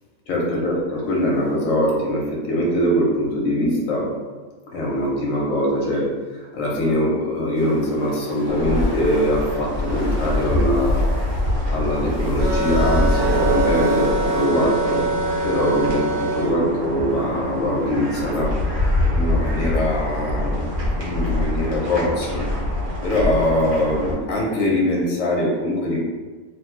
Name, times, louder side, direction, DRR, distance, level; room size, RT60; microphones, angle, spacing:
voice 1, 0.3-4.1 4.7-11.1 11.7-15.0 15.4-18.6 19.1-20.6 21.0-22.5 23.0-26.0, equal, 65° left, -3 dB, 1.1 m, -22 dB
sound 1, 7.5-14.5, left 1 dB, 35° left, 0.7 m, -39 dB
sound 2, 8.5-24.1, left 1 dB, 60° right, 1.2 m, -24 dB
sound 3, 12.4-16.5, right 3 dB, 45° right, 0.7 m, -25 dB
3.1 x 2.3 x 3.2 m, 1.3 s
omnidirectional pair, 1.5 m